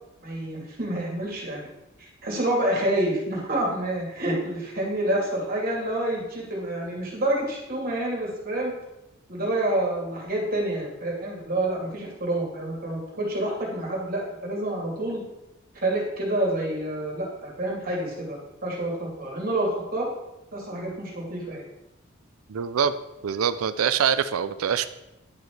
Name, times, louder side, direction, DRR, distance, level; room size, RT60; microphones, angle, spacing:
voice 1, 0.2-1.7 2.0-8.7 9.3-15.2 15.7-20.1 20.5-21.6, right 1 dB, 45° right, -3 dB, 2.5 m, -28 dB
voice 2, 22.5-22.9 23.2-24.9, right 7 dB, 90° right, 12 dB, 0.4 m, -24 dB
10.5 x 4.4 x 4.7 m, 0.94 s
head